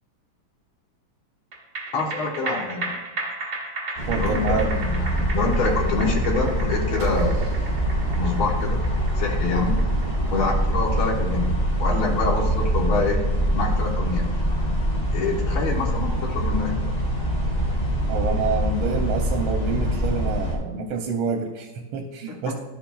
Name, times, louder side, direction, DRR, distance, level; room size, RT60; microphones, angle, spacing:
sound 1, 1.5-14.2 14.5-14.6, right 3 dB, 45° right, 1.6 m, -36 dB
voice 1, 1.9-2.9 4.1-7.6 8.2-8.8 9.2-9.8 10.3-13.2 13.5-14.4 15.1-16.8, left 3 dB, 80° left, 0 dB, 2.0 m, -26 dB
sound 2, 4.0-20.6, equal, 20° left, 1.3 m, -24 dB
voice 2, 4.1-4.7 18.1-22.5, right 4 dB, 90° right, 2 dB, 1.5 m, -27 dB
sound 3, 7.0-9.3, right 7 dB, 65° right, 0.8 m, -32 dB
11.5 x 5.8 x 2.4 m, 1.2 s
omnidirectional pair, 2.3 m